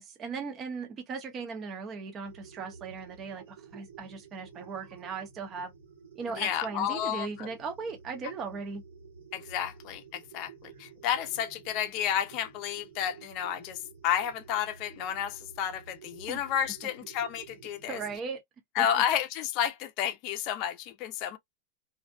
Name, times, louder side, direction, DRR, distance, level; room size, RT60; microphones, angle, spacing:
voice 1, 0.0-5.7 6.1-8.8 16.3-16.4 17.9-18.4 18.8-19.0, right 5 dB, 30° right, 0.7 m, -38 dB
sound 1, 2.2-18.2, right 6 dB, 85° right, 1.3 m, -52 dB
voice 2, 6.4-7.5 9.3-18.0 18.8-21.4, left 10 dB, 45° left, 0.5 m, -31 dB
2.6 x 2.1 x 2.5 m
supercardioid pair, 135°, 0 cm